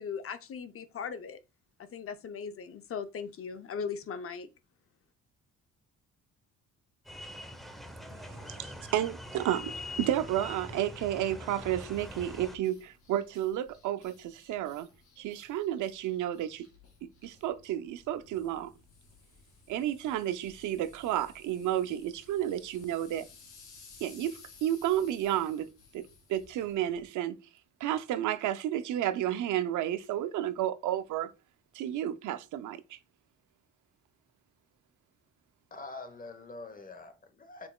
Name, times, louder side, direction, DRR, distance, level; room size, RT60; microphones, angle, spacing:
voice 1, 0.0-1.4 1.9-4.5, left 6 dB, 50° left, 0.6 m, -38 dB
sound 1, 7.1-12.6, left 1 dB, ahead, 0.7 m, -43 dB
voice 2, 8.3-14.9 15.2-16.7 17.0-18.7 19.7-23.3 24.0-26.0 26.3-27.4 27.8-31.3 31.7-33.0, right 12 dB, 80° right, 0.5 m, -32 dB
sound 2, 11.5-27.1, left 4 dB, 80° left, 2.2 m, -58 dB
voice 3, 35.7-37.7, left 3 dB, 30° left, 0.9 m, -45 dB
6.1 x 3.8 x 2.2 m
cardioid pair, 90°, 30 cm